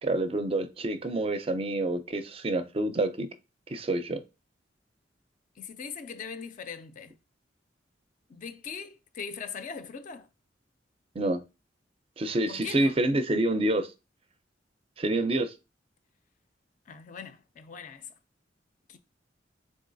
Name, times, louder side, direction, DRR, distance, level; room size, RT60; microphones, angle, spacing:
voice 1, 0.0-3.3 3.7-4.2 11.2-11.4 12.2-13.9 15.0-15.5, right 2 dB, 30° right, 0.4 m, -27 dB
voice 2, 5.6-7.1 8.3-10.3 12.5-13.0 16.9-18.1 18.9-19.0, left 6 dB, 45° left, 0.3 m, -40 dB
3.8 x 3.6 x 2.6 m
head